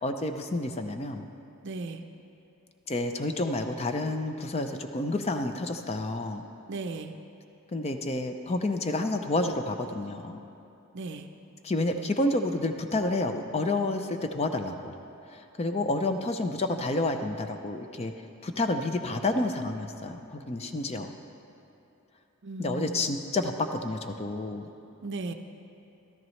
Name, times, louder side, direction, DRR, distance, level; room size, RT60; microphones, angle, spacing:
voice 1, 0.0-1.2 2.9-6.4 7.7-10.4 11.6-15.0 15.3-18.1 18.4-21.1 22.6-24.6, left 2 dB, 25° left, 6 dB, 0.5 m, -29 dB
voice 2, 1.6-2.0 6.7-7.1 10.9-11.3 22.4-23.2 25.0-25.3, right 3 dB, 55° right, 7 dB, 0.5 m, -36 dB
13.5 x 13.0 x 3.2 m, 2.7 s
head